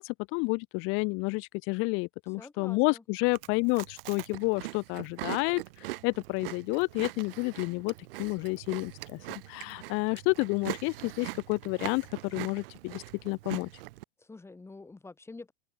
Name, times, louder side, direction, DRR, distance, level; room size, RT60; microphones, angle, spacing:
voice 1, 0.0-5.6 6.0-7.9 8.2-13.7, left 30 dB, 45° left, 0.8 m, -30 dB
voice 2, 2.3-3.0 14.2-15.5, left 3 dB, 10° left, 4.6 m, -47 dB
Chewing mastication, 3.2-14.0, right 19 dB, 70° right, 1.2 m, -42 dB
open air
supercardioid pair, 140°, 30 cm